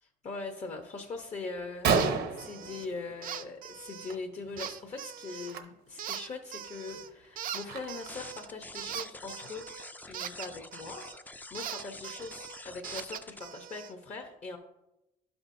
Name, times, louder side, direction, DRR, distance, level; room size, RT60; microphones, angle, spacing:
voice 1, 0.0-9.6 10.0-14.6, left 3 dB, 40° left, 2 dB, 1.0 m, -41 dB
Gunshot gunfire, 1.2-1.3 1.6-1.7 1.8-3.5 3.8-4.1 4.4-4.6 5.4-5.6 6.1-6.2 6.7-8.3, right 5 dB, 75° right, 1.0 m, -31 dB
sound 1, 1.9-2.1 2.4-2.9 3.2-4.1 4.6-5.6 6.0-7.1 7.4-11.2 11.5-13.9, right 10 dB, 55° right, 0.5 m, -41 dB
sound 2, 8.1-13.4, left 2 dB, 10° left, 0.5 m, -47 dB
11.5 x 5.8 x 2.7 m, 0.93 s
cardioid pair, 110°, 17 cm